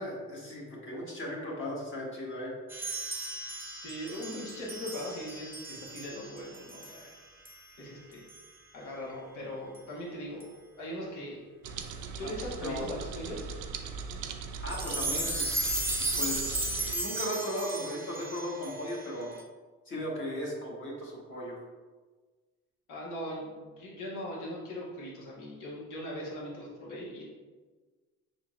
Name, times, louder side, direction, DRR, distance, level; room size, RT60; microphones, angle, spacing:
voice 1, 0.0-2.5 12.2-12.3 12.6-12.9 14.6-15.4 16.2-19.3 19.9-21.6, equal, 40° left, -3 dB, 1.4 m, -36 dB
sound 1, 2.7-7.2 7.5-7.7 8.3-8.5 9.8-9.9 10.4-10.5 11.8-11.9 14.7-19.4, right 2 dB, 5° right, 0.7 m, -35 dB
voice 2, 3.8-7.1 7.8-8.2 8.7-10.5 10.8-11.5 11.7-11.8 12.2-13.5 22.9-27.2, equal, 85° left, -4 dB, 1.4 m, -40 dB
sound 2, 11.6-17.0, right 5 dB, 85° right, 0.5 m, -40 dB
5.6 x 3.7 x 2.4 m, 1.4 s
cardioid pair, 90°, 30 cm